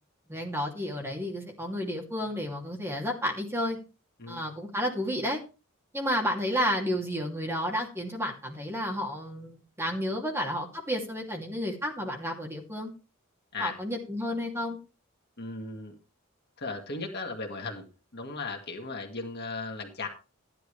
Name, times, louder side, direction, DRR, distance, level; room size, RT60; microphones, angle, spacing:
voice 1, 0.3-3.8 4.3-5.4 5.9-12.9 13.6-14.8, equal, 10° right, -1 dB, 2.7 m, -31 dB
voice 2, 15.4-15.9 16.6-17.8 18.1-20.1, left 3 dB, 50° left, 2 dB, 2.0 m, -36 dB
14.0 x 11.0 x 3.3 m, 0.33 s
head